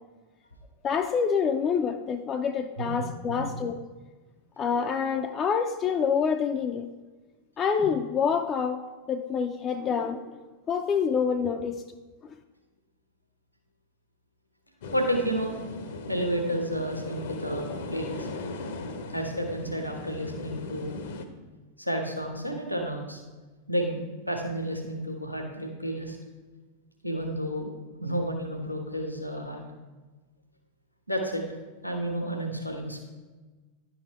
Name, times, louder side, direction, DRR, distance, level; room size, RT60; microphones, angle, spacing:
voice 1, 0.8-3.8 4.6-6.9 7.6-10.2 10.7-11.8, left 6 dB, 25° left, 6 dB, 0.4 m, -27 dB
voice 2, 2.8-3.5 14.9-15.6 16.1-18.3 19.1-21.1 21.8-23.2 23.7-24.0 24.3-26.2 27.0-27.7 28.0-29.6 31.1-31.4 31.8-33.0, right 1 dB, 90° left, 3 dB, 1.0 m, -31 dB
sound 1, 14.8-21.2, left 3 dB, 55° left, 0.7 m, -38 dB
10.5 x 4.3 x 4.2 m, 1.3 s
figure-of-eight pair, 90°, 0 cm